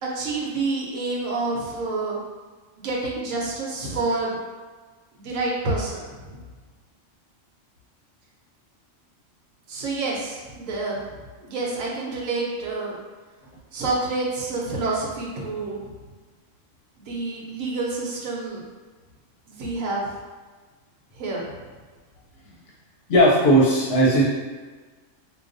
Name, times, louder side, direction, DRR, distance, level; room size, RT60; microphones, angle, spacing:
voice 1, 0.0-2.2 2.8-4.4 5.1-6.4 9.7-13.0 13.7-15.9 17.1-18.6 19.5-20.1 21.1-21.4, right 3 dB, 90° right, -4 dB, 1.1 m, -28 dB
voice 2, 23.1-24.2, right 1 dB, 60° left, -4 dB, 0.8 m, -17 dB
4.7 x 2.2 x 2.5 m, 1.4 s
omnidirectional pair, 1.3 m